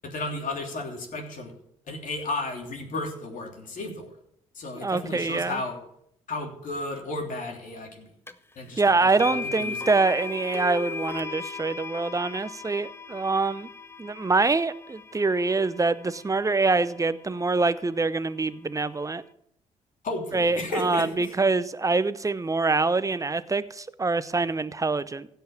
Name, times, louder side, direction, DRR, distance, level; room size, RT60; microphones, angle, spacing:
voice 1, 0.0-1.5 1.9-4.1 4.5-5.8 6.3-8.1 8.6-9.8 20.0-21.3, left 2 dB, 55° left, 2 dB, 3.1 m, -33 dB
voice 2, 4.8-5.6 8.8-13.7 14.0-19.2 20.3-25.3, right 3 dB, 20° right, 15 dB, 0.8 m, -25 dB
sound 1, 8.3-8.4 9.2-17.2, left 5 dB, 15° left, 0.9 m, -37 dB
16.0 x 5.7 x 7.2 m, 0.71 s
hypercardioid pair, 50°, 16 cm